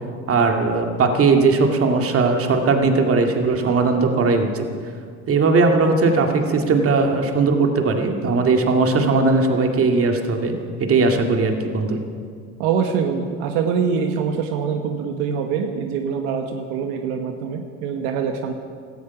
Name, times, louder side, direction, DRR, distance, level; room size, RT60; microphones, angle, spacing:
voice 1, 0.3-4.7 5.3-10.5 10.8-12.0, right 3 dB, 45° right, 4 dB, 2.2 m, -18 dB
voice 2, 12.6-18.5, right 6 dB, 85° right, 5 dB, 1.4 m, -24 dB
17.0 x 13.5 x 6.0 m, 2.1 s
supercardioid pair, 90°, 32 cm